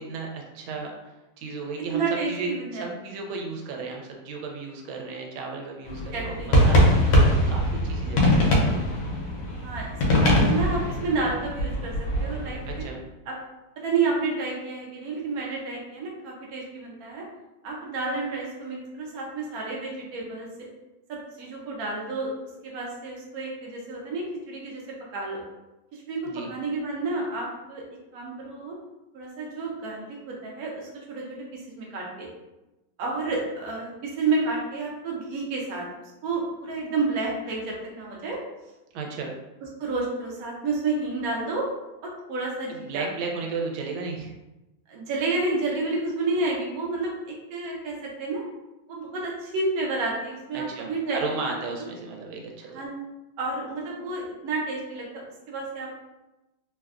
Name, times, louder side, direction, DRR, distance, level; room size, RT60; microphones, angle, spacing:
voice 1, 0.0-2.0 2.3-8.7 12.7-13.0 26.2-26.5 38.9-39.3 42.9-44.3 50.5-52.9, right 4 dB, 85° right, 1 dB, 1.4 m, -34 dB
voice 2, 1.9-2.8 6.1-6.5 9.5-12.8 13.3-13.4 13.8-17.2 17.6-20.5 21.1-22.3 22.6-24.8 25.1-25.4 25.9-27.8 28.1-28.7 29.1-32.3 33.0-35.9 36.2-38.4 39.8-41.7 42.0-43.1 44.9-48.5 48.9-51.5 52.7-53.1 53.4-55.9, right 3 dB, 65° right, -2 dB, 0.9 m, -30 dB
sound 1, 5.9-12.8, equal, 70° left, 1.2 m, -22 dB
3.3 x 2.2 x 2.4 m, 1.0 s
omnidirectional pair, 2.2 m